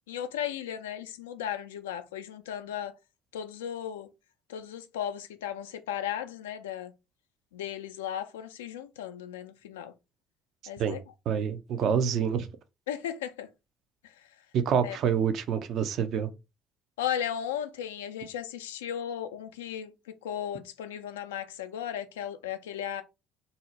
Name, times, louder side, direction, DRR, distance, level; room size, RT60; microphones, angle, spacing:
voice 1, 0.1-2.9 3.3-4.1 4.5-6.9 7.5-9.9 10.7-11.0 12.9-13.5 14.8-15.0 17.0-19.9 20.2-23.0, left 10 dB, 90° left, 0.4 m, -35 dB
voice 2, 11.3-12.5 14.5-16.3, right 7 dB, 60° right, 0.5 m, -27 dB
2.7 x 2.1 x 3.9 m
hypercardioid pair, 65°, 0 cm